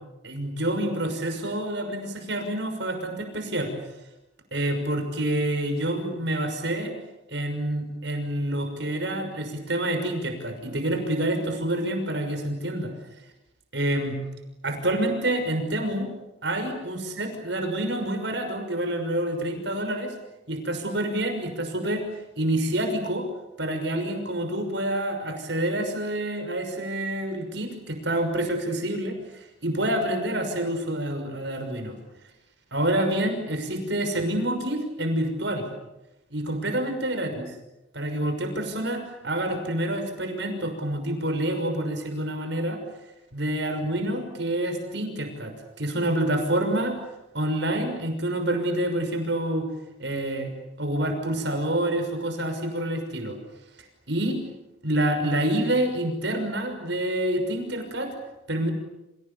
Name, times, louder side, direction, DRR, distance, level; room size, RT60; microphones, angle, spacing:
voice 1, 0.2-3.7 4.5-6.9 7.3-12.9 13.7-14.2 14.6-16.1 16.4-20.1 20.5-22.1 22.4-23.3 23.6-32.0 32.7-35.7 36.3-37.5 37.9-42.8 43.3-47.0 47.3-49.7 50.0-50.5 50.8-53.4 54.1-54.4 54.8-58.1 58.5-58.7, right 1 dB, 65° right, 6 dB, 6.2 m, -27 dB
29.5 x 26.5 x 7.2 m, 0.97 s
head